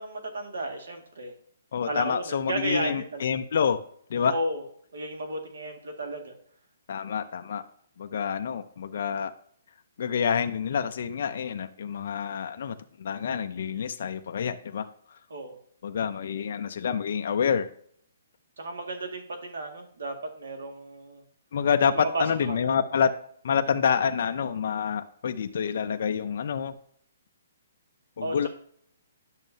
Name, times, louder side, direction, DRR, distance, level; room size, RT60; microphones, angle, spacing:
voice 1, 0.0-1.3 1.9-3.2 4.3-4.6 4.9-6.3 15.3-15.6 18.6-21.2 21.9-22.6 28.2-28.5, right 2 dB, 75° right, 4 dB, 1.9 m, -33 dB
voice 2, 1.7-3.8 4.1-4.4 6.9-7.6 8.0-9.3 10.0-14.9 15.8-17.7 21.5-23.1 23.4-26.7 28.2-28.5, left 7 dB, 45° left, 6 dB, 0.4 m, -27 dB
10.5 x 6.3 x 2.7 m, 0.63 s
hypercardioid pair, 180°, 0 cm